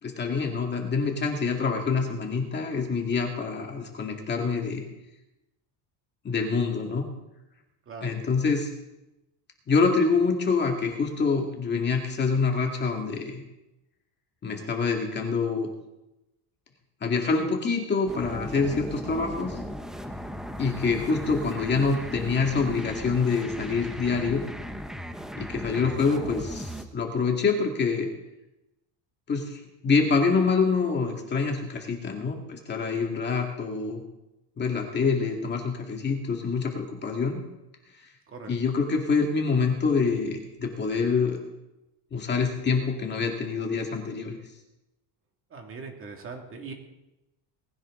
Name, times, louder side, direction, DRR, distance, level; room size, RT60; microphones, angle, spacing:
voice 1, 0.0-4.9 6.2-7.1 8.0-8.7 9.7-13.4 14.4-15.7 17.0-19.6 20.6-24.5 25.4-28.1 29.3-34.0 34.6-37.4 38.5-41.4 42.1-44.4, left 4 dB, 25° left, 1 dB, 2.1 m, -26 dB
sound 1, 18.1-26.8, equal, ahead, 0.6 m, -37 dB
voice 2, 45.5-46.7, right 4 dB, 30° right, 2 dB, 2.1 m, -40 dB
20.0 x 16.5 x 3.7 m, 0.93 s
cardioid pair, 180°, 45 cm